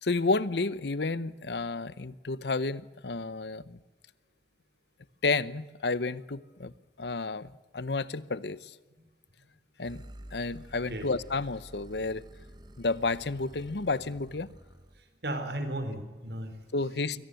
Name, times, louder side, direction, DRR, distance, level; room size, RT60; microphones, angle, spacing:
voice 1, 0.0-3.8 5.2-6.7 7.0-8.8 9.8-10.0 10.3-12.3 12.8-14.5 16.7-17.2, left 3 dB, 75° left, 0.9 m, -31 dB
sound 1, 9.8-15.0, right 1 dB, 25° right, 1.2 m, -50 dB
voice 2, 15.2-16.6 16.8-17.2, right 1 dB, 70° right, 4.0 m, -36 dB
24.0 x 17.0 x 7.7 m
head